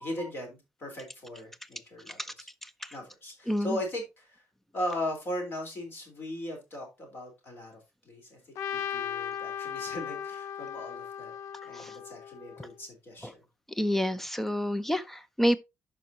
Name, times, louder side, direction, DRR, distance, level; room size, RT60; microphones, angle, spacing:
voice 1, 0.0-2.5 2.9-4.4 4.7-8.4 8.9-11.3 11.6-13.4, left 1 dB, 40° left, 3.8 m, -38 dB
voice 2, 3.5-3.8 11.7-11.9 13.2-13.3 13.8-15.6, equal, 5° left, 0.5 m, -28 dB
Trumpet, 8.6-12.7, left 8 dB, 70° left, 0.4 m, -37 dB
12.0 x 5.3 x 2.8 m
cardioid pair, 170°, 6 cm